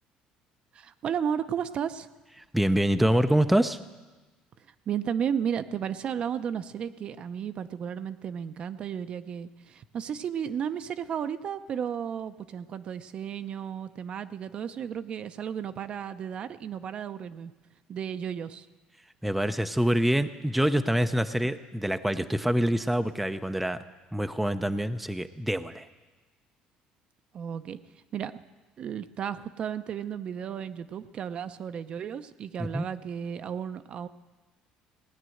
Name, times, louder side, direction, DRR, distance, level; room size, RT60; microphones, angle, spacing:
voice 1, 0.7-2.1 4.9-17.5 17.9-18.7 27.3-27.8 28.1-28.3 28.8-34.1, right 8 dB, 45° right, 11 dB, 0.6 m, -33 dB
voice 2, 2.5-3.8 19.2-23.8 24.1-25.9 32.6-32.9, right 1 dB, 5° right, 8 dB, 0.5 m, -25 dB
17.5 x 9.9 x 7.8 m, 1.2 s
cardioid pair, 125°, 2 cm